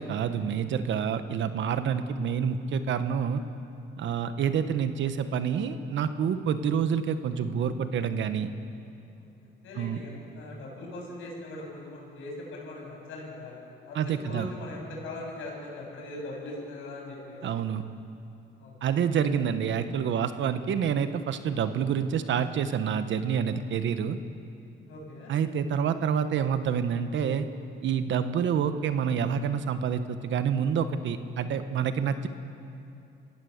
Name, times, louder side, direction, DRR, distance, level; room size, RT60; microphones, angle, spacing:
voice 1, 0.0-3.4 4.0-8.5 9.7-10.0 13.9-14.5 17.4-17.8 18.8-24.2 25.3-27.5 27.8-32.3, right 7 dB, 70° right, 10 dB, 1.3 m, -28 dB
voice 2, 9.6-13.6 13.9-17.6 18.6-18.7 24.9-25.3, left 2 dB, 80° left, -2 dB, 7.3 m, -40 dB
27.0 x 16.0 x 6.7 m, 2.7 s
cardioid pair, 90°, 20 cm